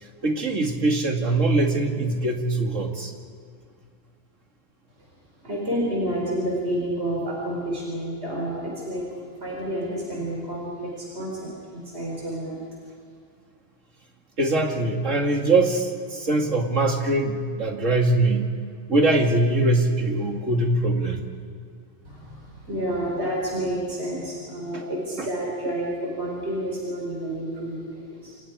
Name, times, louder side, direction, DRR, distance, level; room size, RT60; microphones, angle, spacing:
voice 1, 0.2-3.1 14.4-18.5 18.9-21.2 24.7-24.8 25.2-25.3, right 2 dB, 80° right, 2 dB, 2.8 m, -22 dB
voice 2, 5.4-9.0 9.4-12.6 22.1-28.4, right 1 dB, 60° right, -3 dB, 5.2 m, -29 dB
28.5 x 28.0 x 4.9 m, 2.2 s
omnidirectional pair, 1.3 m